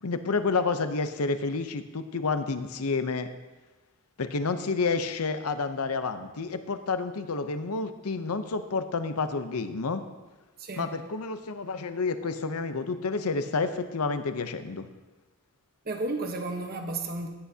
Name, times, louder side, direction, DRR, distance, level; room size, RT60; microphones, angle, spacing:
voice 1, 0.0-3.3 4.2-10.0 10.7-14.9, left 4 dB, 80° left, 9 dB, 0.7 m, -29 dB
voice 2, 10.6-10.9 15.8-17.3, right 2 dB, 45° right, 4 dB, 1.1 m, -32 dB
15.5 x 10.5 x 2.8 m, 1.2 s
head